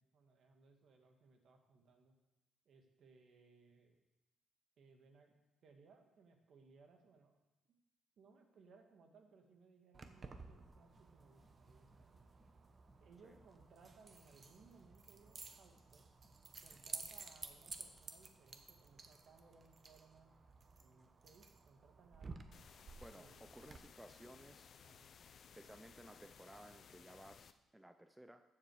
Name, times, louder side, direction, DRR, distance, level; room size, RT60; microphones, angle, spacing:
voice 1, 0.0-2.2 2.7-4.0 4.8-5.4 5.6-7.4 8.2-12.2 13.0-16.1 16.6-20.3 20.8-22.5 23.1-23.9 24.8-25.1, right 4 dB, 65° right, 4 dB, 1.8 m, -66 dB
Keys jangling, 9.9-23.8, right 4 dB, 40° right, 1.0 m, -54 dB
sound 1, 10.5-18.1, left 2 dB, 20° left, 2.1 m, -74 dB
sound 2, 22.5-27.5, left 7 dB, 55° left, 0.6 m, -61 dB
voice 2, 23.0-24.7 25.5-28.4, right 1 dB, 10° right, 8 dB, 0.6 m, -58 dB
14.0 x 7.7 x 4.9 m, 1.0 s
cardioid pair, 90°, 0 cm